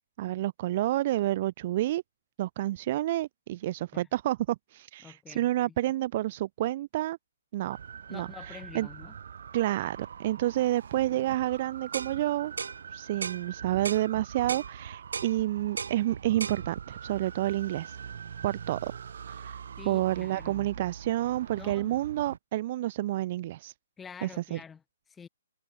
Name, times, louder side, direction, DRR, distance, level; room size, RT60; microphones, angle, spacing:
voice 1, 0.2-2.0 2.4-7.2 7.5-7.8 8.1-8.3 8.7-8.9 9.5-12.5 12.9-18.0 18.4-18.9 19.3-19.6 19.9-23.7 24.2-24.6, right 14 dB, 40° right, 0.6 m, -29 dB
voice 2, 5.0-5.8 8.1-9.2 19.8-20.7 21.5-22.0 24.0-25.3, left 6 dB, 10° left, 5.7 m, -47 dB
sound 1, 7.7-22.4, right 7 dB, 65° right, 2.0 m, -43 dB
sound 2, 11.9-12.1 12.6-12.8 13.2-13.4 13.8-14.1 14.5-14.7 15.1-15.3 15.8-16.0 16.4-16.6, right 5 dB, 80° right, 4.6 m, -35 dB
hypercardioid pair, 155°, 0 cm